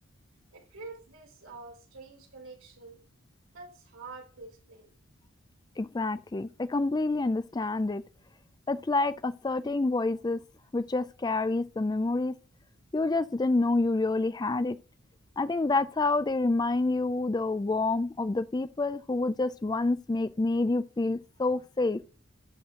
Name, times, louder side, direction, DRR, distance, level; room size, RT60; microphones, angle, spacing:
voice 1, 0.5-3.0 3.5-4.9, right 3 dB, 80° right, 3.7 m, -47 dB
voice 2, 5.8-8.0 8.7-10.4 10.7-12.4 12.9-14.8 15.4-22.0, left 2 dB, 20° left, 0.3 m, -28 dB
11.5 x 4.2 x 3.7 m
head